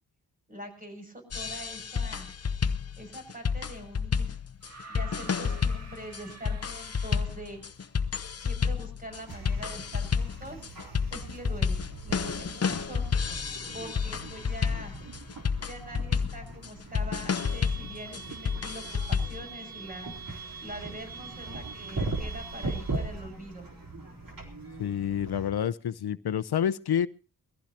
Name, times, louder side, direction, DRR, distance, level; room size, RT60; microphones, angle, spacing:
voice 1, 0.5-2.3 3.0-4.4 4.9-7.6 8.3-10.6 11.1-13.1 13.7-15.0 15.7-20.1 20.6-23.7, equal, 20° right, 3 dB, 6.7 m, -43 dB
sound 1, 1.3-19.4, left 6 dB, 40° left, 0.8 m, -31 dB
sound 2, 4.6-7.7 8.9-9.0, right 3 dB, 45° right, 2.0 m, -47 dB
sound 3, 9.1-25.5, right 3 dB, 60° right, 3.9 m, -39 dB
voice 2, 24.8-27.1, left 9 dB, 85° left, 14 dB, 0.7 m, -28 dB
22.5 x 15.0 x 2.9 m, 0.37 s
wide cardioid pair, 100°, 38 cm